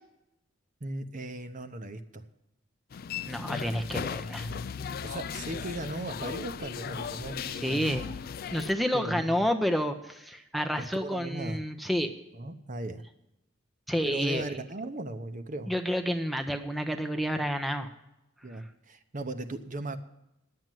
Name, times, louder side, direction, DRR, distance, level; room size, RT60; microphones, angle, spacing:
voice 1, 0.8-2.2 4.5-4.6 5.0-8.1 8.9-9.5 10.8-11.6 12.3-13.0 14.0-15.7 18.4-20.0, right 2 dB, 40° right, 8 dB, 0.8 m, -37 dB
sound 1, 2.9-8.7, left 6 dB, 45° left, 0.4 m, -37 dB
voice 2, 3.3-4.5 7.5-8.1 8.5-12.1 13.9-14.5 15.7-17.9, equal, ahead, 5 dB, 0.7 m, -29 dB
11.0 x 7.7 x 9.1 m, 0.88 s
head